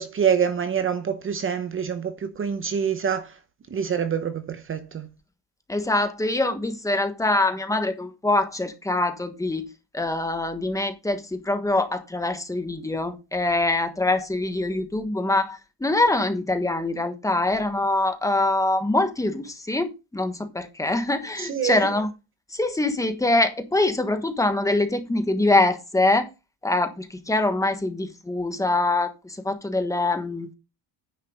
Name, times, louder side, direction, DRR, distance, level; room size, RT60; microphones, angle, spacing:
voice 1, 0.0-3.4 3.7-5.1 21.4-21.9, right 7 dB, 30° right, 0.8 m, -26 dB
voice 2, 5.7-9.7 9.9-22.1 22.5-26.3 26.6-30.5, left 2 dB, 10° left, 1.3 m, -24 dB
10.0 x 5.5 x 5.2 m
cardioid pair, 165°, 39 cm